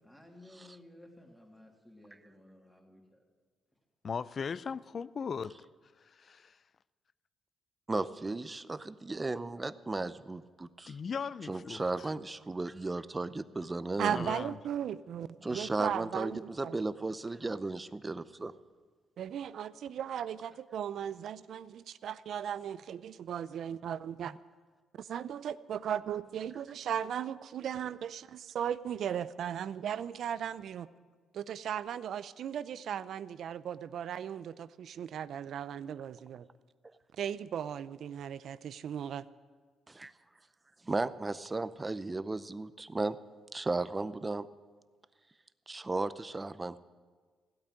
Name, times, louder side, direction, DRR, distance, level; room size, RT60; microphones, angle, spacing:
voice 1, 0.0-3.2, left 1 dB, 10° left, 0 dB, 3.1 m, -56 dB
voice 2, 4.0-5.5 6.0-6.6 10.9-12.1 14.1-14.6, left 6 dB, 45° left, 18 dB, 0.4 m, -38 dB
voice 3, 7.9-11.0 11.5-14.3 15.4-18.6 24.2-24.4 39.9-40.1 40.8-43.2 43.5-44.5 45.7-46.8, right 3 dB, 20° right, 15 dB, 0.6 m, -35 dB
voice 4, 14.0-16.8 19.2-24.3 25.0-30.9 31.3-36.5 37.1-39.2, right 9 dB, 65° right, 16 dB, 0.5 m, -37 dB
15.5 x 8.7 x 9.4 m, 1.5 s
cardioid pair, 90°, 0 cm